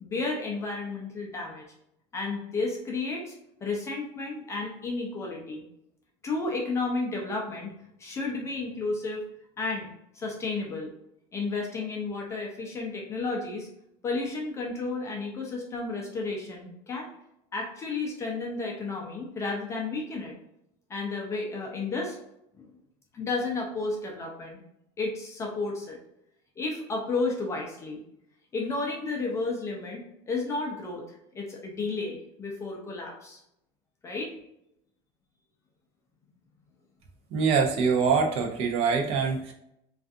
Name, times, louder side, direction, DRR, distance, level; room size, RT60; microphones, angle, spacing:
voice 1, 0.0-1.7 2.1-3.4 3.6-5.6 6.2-7.7 8.0-9.2 9.6-9.9 10.1-10.9 11.3-13.7 14.0-17.1 17.5-20.4 20.9-22.2 22.6-22.7 23.1-24.6 25.0-26.0 26.6-28.0 28.5-33.4 34.0-34.3, left 3 dB, 20° left, -1 dB, 0.4 m, -32 dB
voice 2, 37.3-39.5, right 5 dB, 45° right, 2 dB, 0.5 m, -24 dB
2.4 x 2.4 x 2.5 m, 0.79 s
cardioid pair, 155°, 13 cm